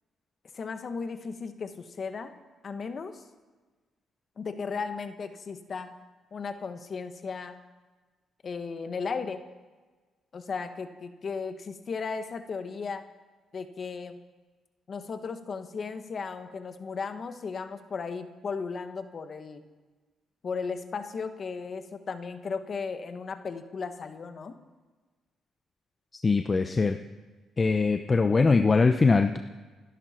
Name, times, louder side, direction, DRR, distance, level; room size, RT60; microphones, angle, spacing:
voice 1, 0.5-2.3 2.6-3.2 4.4-6.0 6.3-7.6 8.4-9.4 10.3-13.1 13.5-14.2 14.9-19.6 20.4-24.6, left 5 dB, 45° left, 8 dB, 1.5 m, -35 dB
voice 2, 26.2-27.0 27.6-29.4, left 4 dB, 30° left, 7 dB, 0.7 m, -22 dB
28.5 x 11.0 x 4.5 m, 1.3 s
cardioid pair, 90°, 0 cm